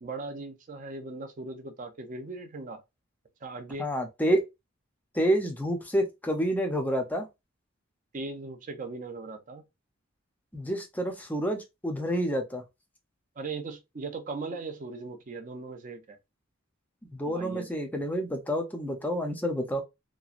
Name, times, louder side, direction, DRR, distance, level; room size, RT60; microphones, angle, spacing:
voice 1, 0.0-2.8 3.4-3.9 8.1-9.6 13.4-16.2 17.2-17.7, right 3 dB, 40° right, 0.5 m, -38 dB
voice 2, 3.8-4.4 5.1-7.3 10.5-12.6 17.1-19.8, equal, 10° left, 0.5 m, -28 dB
3.0 x 2.3 x 2.4 m
head